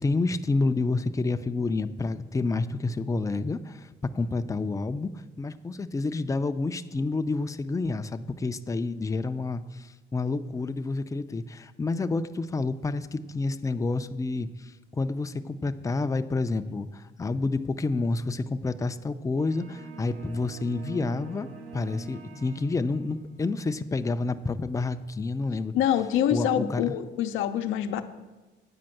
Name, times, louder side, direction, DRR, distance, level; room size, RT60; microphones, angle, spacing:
voice 1, 0.0-3.9 4.1-5.1 5.4-25.7 26.3-26.8, left 3 dB, 15° left, 9 dB, 0.4 m, -29 dB
sound 1, 19.4-23.3, right 5 dB, 90° right, 0.9 m, -44 dB
voice 2, 25.7-28.0, left 10 dB, 90° left, 9 dB, 0.6 m, -25 dB
8.8 x 5.1 x 7.7 m, 1.2 s
cardioid pair, 90°, 20 cm